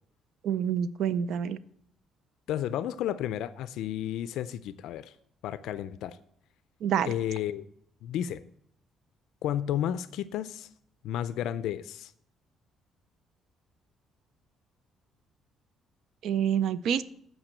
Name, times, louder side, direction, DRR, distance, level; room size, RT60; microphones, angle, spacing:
voice 1, 0.4-1.6 6.8-7.1 16.2-17.1, right 8 dB, 60° right, 0.4 m, -27 dB
voice 2, 2.5-5.1 5.4-6.2 7.1-7.6 8.0-8.4 9.4-10.7 11.0-12.1, left 11 dB, 75° left, 0.4 m, -32 dB
8.9 x 5.4 x 7.9 m
cardioid pair, 160°, 0 cm